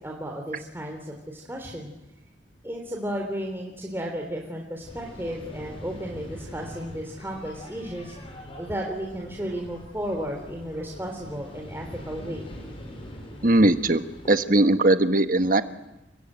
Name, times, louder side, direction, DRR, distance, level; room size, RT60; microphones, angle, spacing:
voice 1, 0.0-1.9 2.6-8.1 8.6-12.5, equal, 10° right, 0 dB, 3.4 m, -33 dB
sound 1, 4.8-14.3, equal, 30° left, 5.8 m, -43 dB
voice 2, 13.4-15.6, right 2 dB, 45° right, 9 dB, 1.4 m, -20 dB
30.0 x 22.0 x 9.1 m, 0.93 s
head